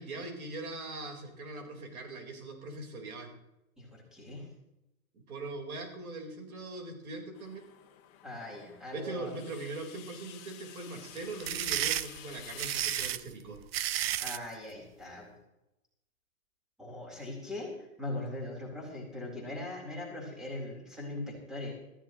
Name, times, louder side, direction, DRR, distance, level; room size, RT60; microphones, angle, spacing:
voice 1, 0.0-3.3 5.1-7.7 8.9-13.6 18.2-18.3, right 2 dB, 85° right, 2 dB, 4.5 m, -41 dB
voice 2, 3.8-4.5 8.2-9.3 14.2-15.3 16.8-17.7 18.0-21.7, left 2 dB, ahead, -2 dB, 4.0 m, -40 dB
sound 1, 7.3-13.1, left 11 dB, 30° left, 1.7 m, -50 dB
sound 2, 11.2-14.5, right 12 dB, 45° right, 0.5 m, -32 dB
18.0 x 14.5 x 3.1 m, 0.90 s
hypercardioid pair, 155°, 42 cm